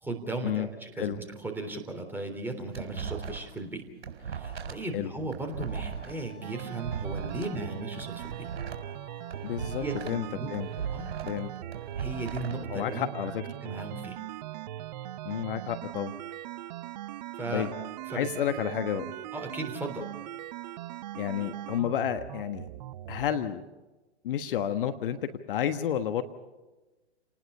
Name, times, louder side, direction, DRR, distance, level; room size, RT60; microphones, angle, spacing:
voice 1, 0.0-3.8 4.3-8.5 9.8-10.5 10.9-11.1 12.0-13.1 13.6-14.2 17.4-17.7 18.1-18.3 19.3-20.1, right 2 dB, 5° right, 3 dB, 3.6 m, -36 dB
sound 1, 2.3-3.6 3.9-7.5 7.9-10.2 10.5-12.5, right 7 dB, 65° right, 4.5 m, -38 dB
Wind instrument woodwind instrument, 5.7-10.5, left 2 dB, 85° left, 3.7 m, -54 dB
sound 2, 6.4-23.5, right 13 dB, 40° right, 0.6 m, -40 dB
voice 2, 9.4-10.7 11.3-11.5 12.7-13.4 15.2-16.2 17.5-17.7 18.1-19.1 21.2-22.7 23.1-23.6 24.2-26.2, left 10 dB, 50° left, 9 dB, 1.4 m, -31 dB
29.5 x 19.5 x 5.6 m, 1.1 s
figure-of-eight pair, 120°, 34 cm